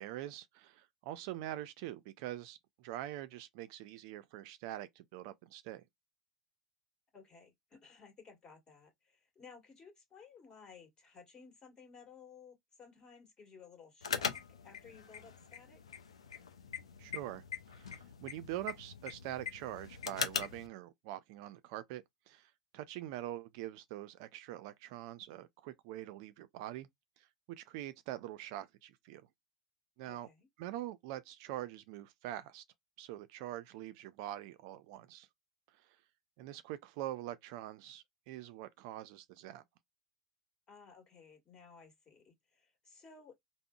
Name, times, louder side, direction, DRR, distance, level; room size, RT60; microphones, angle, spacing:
voice 1, 0.0-5.8 17.0-17.4 17.7-26.9 27.2-29.2 30.0-30.3 30.6-32.6 33.0-35.3 36.4-39.6, right 14 dB, 60° right, 0.3 m, -44 dB
voice 2, 7.1-15.8 30.0-30.5 40.7-43.3, left 5 dB, 30° left, 1.5 m, -57 dB
sound 1, 14.0-20.7, left 6 dB, 85° left, 0.4 m, -41 dB
3.6 x 2.0 x 2.3 m
hypercardioid pair, 85°, 3 cm